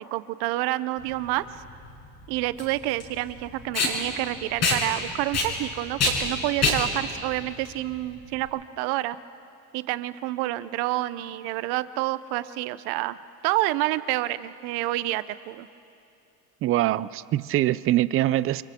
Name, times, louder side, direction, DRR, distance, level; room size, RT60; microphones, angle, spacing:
voice 1, 0.0-1.5 2.3-9.2 9.7-13.2 13.4-15.7, right 17 dB, 65° right, 15 dB, 0.8 m, -28 dB
Packing tape duct tape, 1.0-8.5, left 3 dB, 40° left, 6.1 m, -27 dB
voice 2, 16.6-18.6, right 14 dB, 35° right, 17 dB, 0.4 m, -23 dB
29.0 x 24.5 x 3.7 m, 2.6 s
supercardioid pair, 120°, 42 cm